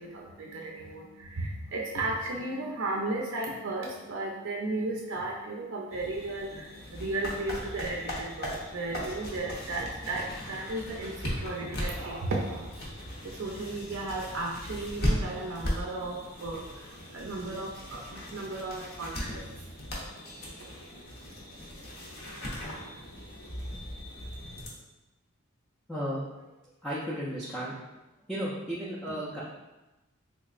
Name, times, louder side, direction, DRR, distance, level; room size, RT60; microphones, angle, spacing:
voice 1, 0.0-12.7 13.2-19.5, right 2 dB, 60° right, -2 dB, 0.4 m, -35 dB
sound 1, 5.9-24.7, equal, 45° left, 0.7 m, -38 dB
voice 2, 25.9-26.5 26.8-27.8 28.3-29.4, equal, ahead, -10 dB, 0.4 m, -34 dB
3.5 x 3.0 x 2.4 m, 1.0 s
head